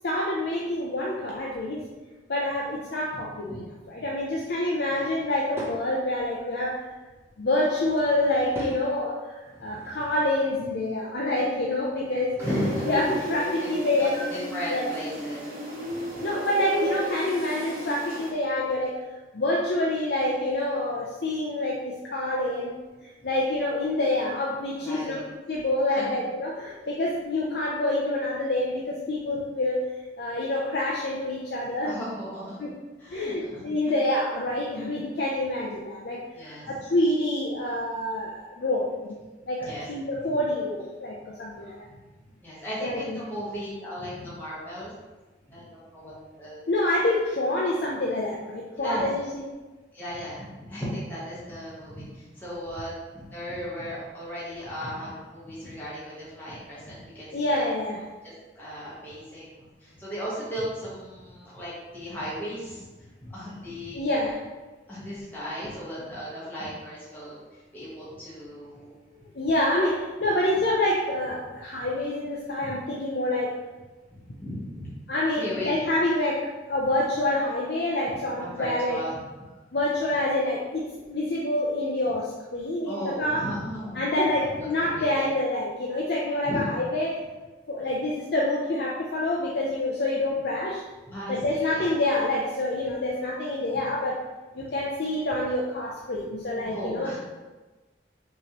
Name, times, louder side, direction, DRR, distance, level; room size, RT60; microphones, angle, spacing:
voice 1, 0.0-1.9 2.3-6.8 7.4-12.4 12.9-14.2 14.7-14.8 16.2-19.0 19.3-22.7 23.0-25.2 25.5-29.9 30.2-32.0 32.6-32.7 33.1-39.1 39.5-41.9 42.8-43.2 46.7-49.4 57.3-58.0 63.9-64.4 69.3-73.5 75.1-79.0 79.7-83.5 83.9-87.2 87.7-90.8 91.3-94.2 94.6-97.2, left 1 dB, 65° left, -3 dB, 0.5 m, -27 dB
Drawer open or close / Wood, 4.9-5.8 7.5-8.8 9.4-10.5 11.8-13.4, right 1 dB, 15° right, 0.8 m, -42 dB
voice 2, 12.4-12.9 13.6-13.7 14.0-15.4 16.1-16.2 24.8-25.2 25.9-26.2 31.8-32.7 33.0-33.9 36.3-36.7 39.6-39.8 40.1-40.2 41.6-42.0 42.4-44.9 45.5-46.6 48.8-49.1 49.9-57.7 58.2-64.0 64.9-68.9 70.2-70.5 71.8-71.9 74.4-74.9 75.4-75.8 78.3-79.5 82.8-84.1 84.4-85.3 86.4-86.7 87.8-87.9 91.1-91.9 94.6-94.7 96.6-97.2, equal, 10° left, -9 dB, 1.1 m, -36 dB
sound 1, 12.4-18.3, equal, 50° right, 1.0 m, -32 dB
6.0 x 3.0 x 2.9 m, 1.2 s
head